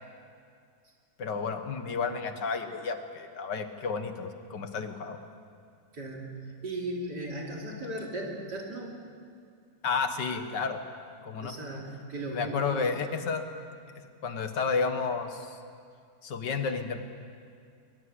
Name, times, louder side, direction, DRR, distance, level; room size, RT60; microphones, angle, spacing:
voice 1, 1.2-5.2 9.8-10.8 11.2-11.5 12.3-13.4 14.0-15.6 16.2-17.0, left 5 dB, 80° left, 8 dB, 2.0 m, -31 dB
voice 2, 5.9-9.0 11.4-13.0, right 1 dB, 70° right, -1 dB, 3.6 m, -37 dB
21.5 x 20.0 x 8.1 m, 2.2 s
omnidirectional pair, 1.9 m